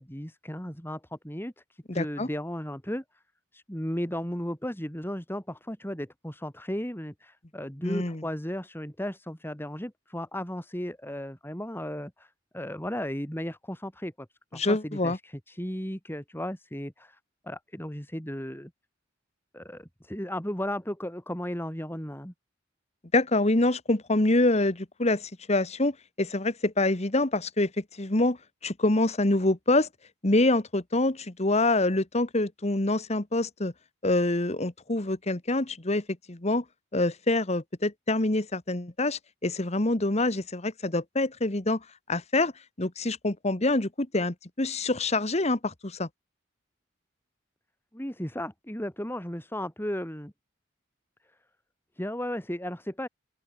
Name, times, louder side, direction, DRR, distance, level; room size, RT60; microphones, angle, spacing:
voice 1, 0.0-3.0 3.5-14.3 14.5-17.2 17.4-18.7 19.5-22.3 47.9-50.3 52.0-53.1, equal, 10° left, 4.7 m, -35 dB
voice 2, 1.9-2.3 7.8-8.2 14.5-15.2 23.1-27.7 28.0-28.4 28.6-29.9 30.2-33.7 34.0-36.6 36.9-41.8 42.1-42.5 42.8-46.1, left 2 dB, 35° left, 1.5 m, -26 dB
open air
head